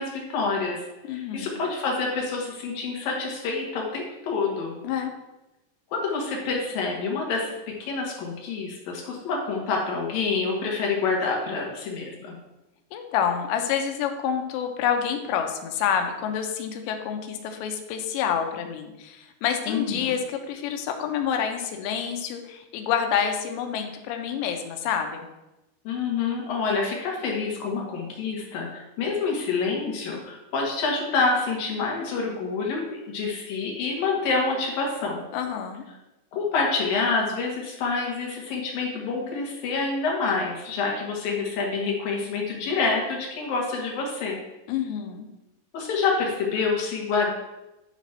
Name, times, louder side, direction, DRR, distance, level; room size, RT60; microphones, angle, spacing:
voice 1, 0.0-4.8 5.9-12.3 19.7-20.2 25.8-35.2 36.3-44.4 45.7-47.3, left 4 dB, 60° left, -1 dB, 2.9 m, -27 dB
voice 2, 1.1-1.5 4.8-5.1 12.9-25.3 35.3-35.8 44.7-45.3, left 8 dB, 90° left, 5 dB, 3.0 m, -28 dB
10.5 x 4.1 x 5.8 m, 1.0 s
omnidirectional pair, 5.1 m